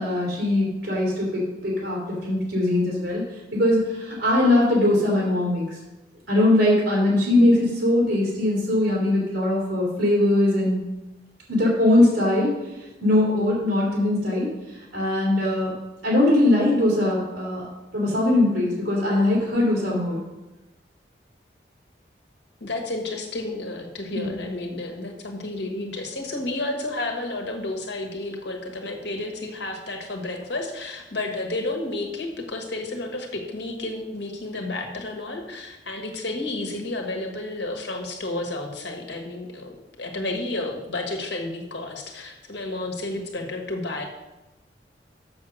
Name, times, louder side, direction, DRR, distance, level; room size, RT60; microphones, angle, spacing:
voice 1, 0.0-3.2 3.5-5.8 6.3-10.8 11.5-12.6 13.0-15.7 16.0-17.7 17.9-20.2 24.1-24.4, left 1 dB, 70° right, -4 dB, 2.8 m, -21 dB
voice 2, 22.6-44.0, left 2 dB, 80° left, 3 dB, 1.5 m, -31 dB
7.1 x 6.3 x 6.4 m, 1.0 s
head